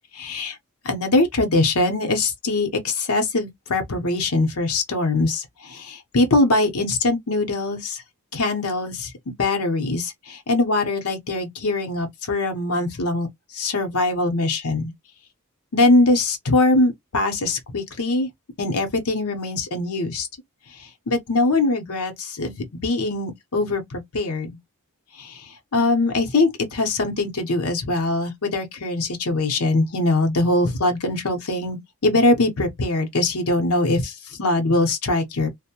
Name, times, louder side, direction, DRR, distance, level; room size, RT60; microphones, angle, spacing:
voice 1, 0.1-0.6 0.8-8.0 8.3-9.1 9.4-13.3 13.5-14.9 15.7-18.3 18.6-20.3 20.8-24.5 25.2-35.5, left 2 dB, 75° left, 0.8 m, -22 dB
2.7 x 2.0 x 2.8 m
head